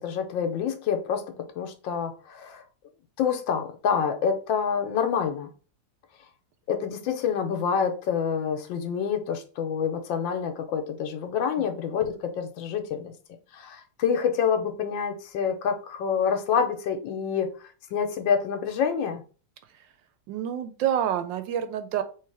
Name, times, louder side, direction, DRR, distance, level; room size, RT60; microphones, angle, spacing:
voice 1, 0.0-2.6 3.2-5.5 6.7-13.1 13.5-17.5 17.9-19.2, left 7 dB, 85° left, 6 dB, 1.5 m, -27 dB
voice 2, 20.3-22.0, right 10 dB, 80° right, 10 dB, 1.3 m, -27 dB
3.2 x 3.2 x 4.6 m, 0.37 s
omnidirectional pair, 2.0 m